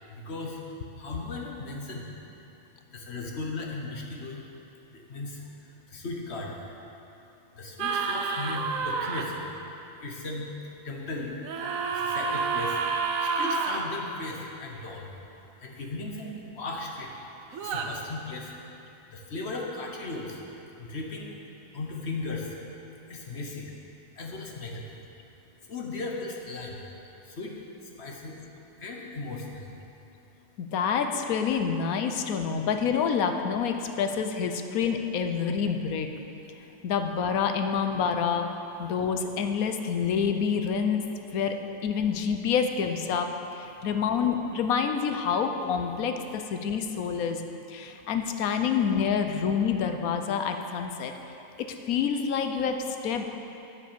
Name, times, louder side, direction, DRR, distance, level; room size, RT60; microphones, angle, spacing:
voice 1, 0.1-0.6 1.0-2.1 2.9-4.5 4.9-6.6 7.6-9.5 10.0-10.5 10.8-11.4 11.9-15.1 15.6-17.1 17.6-18.5 19.1-20.4 20.8-21.4 21.7-22.6 23.1-23.7 24.1-24.9 25.7-26.8 27.2-28.4 28.8-29.7, left 2 dB, 50° left, 0 dB, 1.4 m, -37 dB
sound 1, 7.8-9.2 11.4-13.8 17.5-17.9, right 5 dB, 75° right, 1.1 m, -29 dB
voice 2, 30.6-36.1 36.8-38.5 38.8-41.1 41.3-41.6 41.8-47.4 47.7-51.1 51.9-53.3, left 6 dB, 90° left, 6 dB, 1.2 m, -27 dB
8.8 x 7.5 x 6.8 m, 2.9 s
omnidirectional pair, 1.5 m